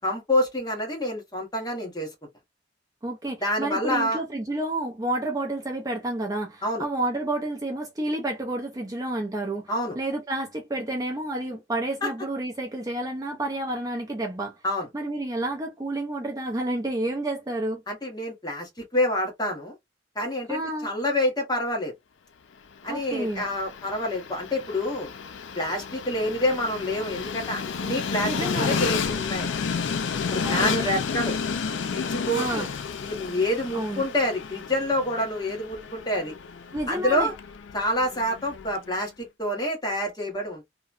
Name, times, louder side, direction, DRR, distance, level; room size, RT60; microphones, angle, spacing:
voice 1, 0.0-2.1 3.4-4.2 6.6-6.8 9.7-9.9 12.0-12.1 14.6-14.9 17.9-19.8 20.1-21.9 22.8-25.1 25.5-29.5 30.3-31.4 31.9-32.7 33.0-36.3 36.9-37.3 37.7-40.6, left 1 dB, 20° left, 1.0 m, -27 dB
voice 2, 3.0-9.7 10.0-14.6 14.9-17.8 20.5-20.9 22.9-23.5 28.2-28.8 30.4-30.8 32.3-32.7 33.7-34.1 36.7-37.3, right 1 dB, 20° right, 0.4 m, -30 dB
Train, 22.8-38.9, left 6 dB, 90° left, 0.4 m, -31 dB
2.9 x 2.1 x 2.3 m
head